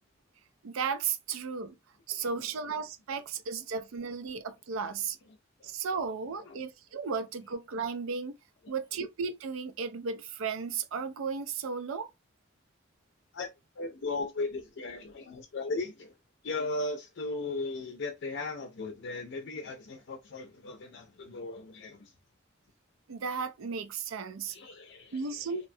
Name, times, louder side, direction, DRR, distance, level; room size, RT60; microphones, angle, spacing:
voice 1, 0.6-1.7 2.1-5.2 5.6-8.4 8.7-12.1 23.1-24.6 25.1-25.7, right 5 dB, 80° right, 0.4 m, -34 dB
voice 2, 13.8-16.1 16.4-22.1 24.5-25.7, left 3 dB, 60° left, 0.5 m, -37 dB
2.8 x 2.1 x 2.6 m
head